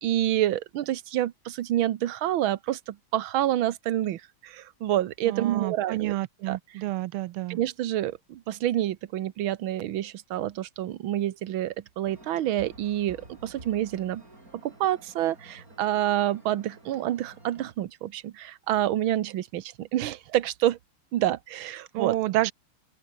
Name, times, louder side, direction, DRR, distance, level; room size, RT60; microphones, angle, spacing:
voice 1, 0.0-6.2 6.5-6.8 7.5-14.2 14.6-20.8 21.1-22.2, right 13 dB, 70° right, 1.8 m, -28 dB
voice 2, 5.2-7.6 21.9-22.5, right 16 dB, 90° right, 1.5 m, -29 dB
sound 1, 12.0-17.7, right 2 dB, 40° right, 7.5 m, -51 dB
open air
omnidirectional pair, 2.3 m